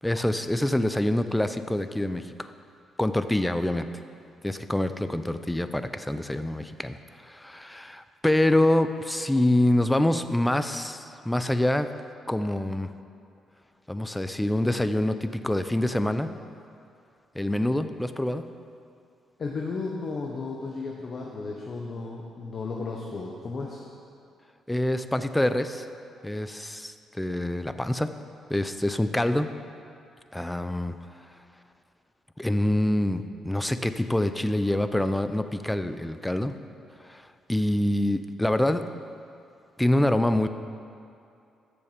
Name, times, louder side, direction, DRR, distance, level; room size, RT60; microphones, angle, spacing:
voice 1, 0.0-2.5 3.0-3.9 4.4-7.0 7.2-11.9 12.3-12.9 13.9-16.3 17.3-18.4 24.7-25.9 26.2-28.1 28.5-29.5 30.3-30.9 32.4-36.5 37.1-37.2 37.5-38.8 39.8-40.5, left 1 dB, 10° left, 10 dB, 0.6 m, -25 dB
voice 2, 19.4-23.8, left 3 dB, 45° left, -1 dB, 1.2 m, -34 dB
14.5 x 6.9 x 5.2 m, 2.5 s
cardioid pair, 90°, 0 cm